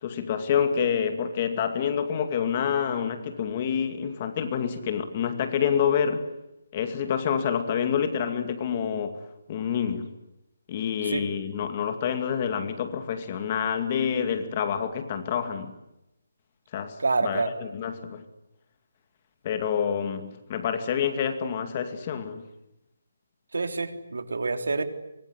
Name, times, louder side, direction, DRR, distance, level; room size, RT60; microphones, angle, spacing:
voice 1, 0.0-6.3 6.7-9.2 9.5-10.1 10.7-15.7 16.7-18.2 19.4-22.5, left 7 dB, 25° left, 8 dB, 2.3 m, -27 dB
voice 2, 17.0-17.5 23.5-24.8, right 3 dB, 80° right, 7 dB, 3.7 m, -27 dB
24.5 x 24.0 x 9.8 m, 0.88 s
hypercardioid pair, 175°, 0 cm